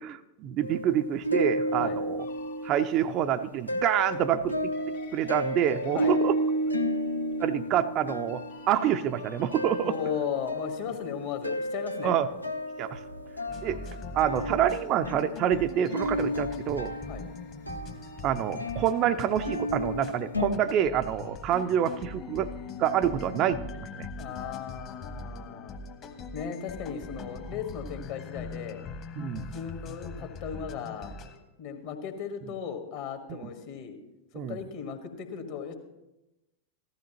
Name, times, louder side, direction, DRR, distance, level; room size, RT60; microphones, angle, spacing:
voice 1, 0.0-2.3 2.6-4.7 5.1-6.4 7.4-10.0 12.0-12.3 12.8-13.0 13.6-13.8 14.1-16.9 18.2-22.5 22.8-24.1 29.2-29.6 33.3-33.5 34.3-34.6, right 10 dB, 35° right, 10 dB, 0.4 m, -27 dB
sound 1, 0.6-3.3 3.7-20.5, equal, 85° left, 0.6 m, -33 dB
sound 2, 2.2-11.6, left 4 dB, 70° left, 1.6 m, -52 dB
voice 2, 9.8-12.2 17.1-17.3 24.2-25.8 26.3-28.8 29.5-31.1 31.6-34.0 34.5-35.7, left 7 dB, 50° left, 6 dB, 1.5 m, -36 dB
sound 3, 13.5-31.4, left 3 dB, 35° left, 1.1 m, -42 dB
15.0 x 12.5 x 2.9 m, 0.97 s
figure-of-eight pair, 90°, 0 cm